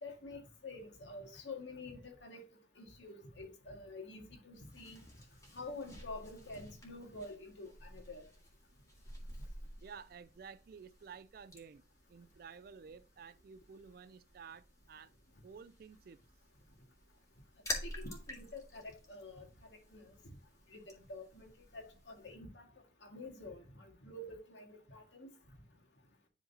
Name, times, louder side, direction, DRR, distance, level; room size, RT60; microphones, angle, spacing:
voice 1, 0.0-2.4 2.8-5.0 5.5-8.3 17.8-20.2 20.7-22.7 23.0-25.3, left 2 dB, 85° left, 2.0 m, -48 dB
sound 1, 4.5-22.3, left 1 dB, 20° left, 2.0 m, -50 dB
voice 2, 9.8-15.1 15.4-16.2, right 6 dB, 55° right, 0.4 m, -53 dB
10.5 x 3.9 x 2.8 m
head